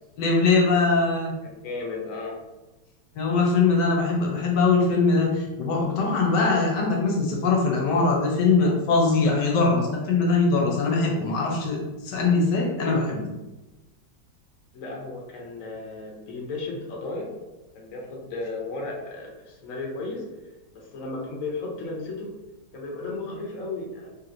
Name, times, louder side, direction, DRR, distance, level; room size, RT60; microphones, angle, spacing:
voice 1, 0.2-1.3 3.2-11.8 12.0-13.3, left 3 dB, 75° left, -1 dB, 1.2 m, -22 dB
voice 2, 1.4-2.4 14.7-17.3 17.7-20.3 20.7-22.3 22.7-24.1, left 3 dB, 60° left, -2 dB, 1.0 m, -34 dB
3.3 x 2.9 x 2.5 m, 1.1 s
omnidirectional pair, 1.9 m